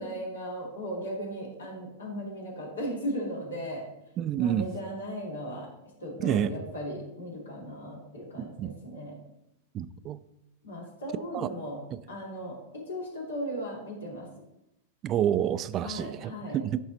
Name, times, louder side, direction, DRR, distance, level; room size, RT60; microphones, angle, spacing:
voice 1, 0.0-3.9 4.4-5.7 6.0-9.2 10.6-11.8 12.1-14.3 15.8-16.6, equal, 80° left, -3 dB, 2.8 m, -37 dB
voice 2, 4.2-4.7 6.2-6.5 8.6-8.7 9.7-10.2 11.3-11.5 15.0-16.8, right 10 dB, 35° right, 15 dB, 0.4 m, -28 dB
10.0 x 3.9 x 4.2 m, 0.85 s
hypercardioid pair, 100°, 0 cm